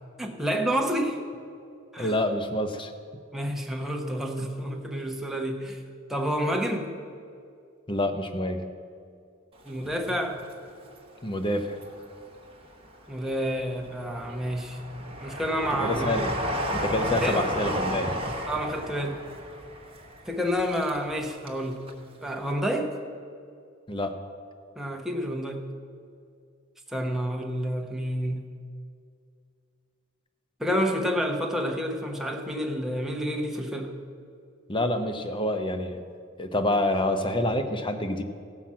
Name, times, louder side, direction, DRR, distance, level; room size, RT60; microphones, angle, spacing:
voice 1, 0.2-1.2 1.9-2.1 3.3-5.8 6.1-6.9 9.6-10.4 13.1-14.8 15.2-16.1 17.2-17.4 18.5-19.2 20.3-21.9 22.2-23.0 24.8-25.6 26.9-28.5 30.6-33.9, equal, ahead, 1 dB, 1.0 m, -29 dB
voice 2, 2.0-2.9 7.9-8.7 11.2-11.8 15.8-16.3 16.7-18.2 23.9-24.1 34.7-36.0 36.4-38.2, left 1 dB, 25° left, 7 dB, 0.7 m, -27 dB
Train, 9.7-10.9 11.4-12.3 12.8-21.6 21.9-22.0, equal, 25° right, 1.2 m, -33 dB
16.0 x 5.9 x 7.3 m, 2.4 s
head